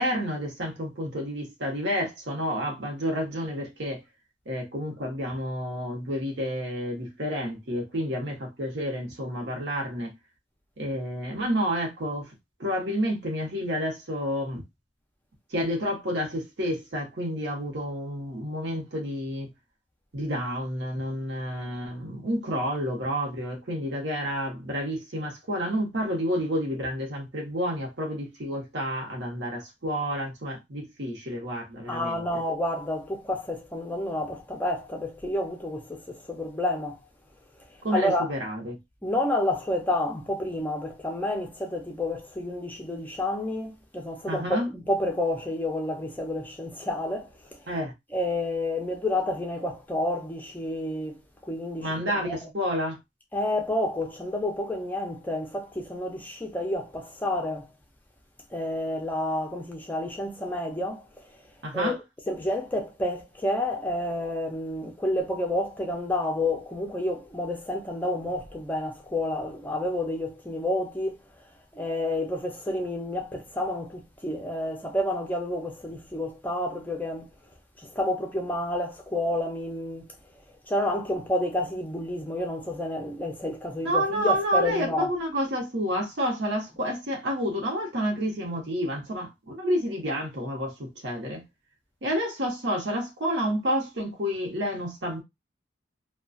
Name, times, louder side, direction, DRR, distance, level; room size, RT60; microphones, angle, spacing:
voice 1, 0.0-4.0 4.5-10.1 10.8-12.3 12.6-14.6 15.5-19.5 20.1-32.4 37.8-38.8 44.3-44.7 47.7-47.9 51.8-53.0 61.6-62.0 83.8-91.4 92.0-95.2, equal, 55° right, 1.0 m, -29 dB
voice 2, 31.9-37.0 37.9-38.3 39.0-47.6 48.1-51.2 51.5-51.9 52.2-52.5 53.3-57.7 58.5-61.0 61.7-62.0 62.3-71.2 71.7-77.3 77.8-80.1 80.7-85.1, left 1 dB, 10° left, 0.5 m, -29 dB
2.9 x 2.3 x 2.5 m
head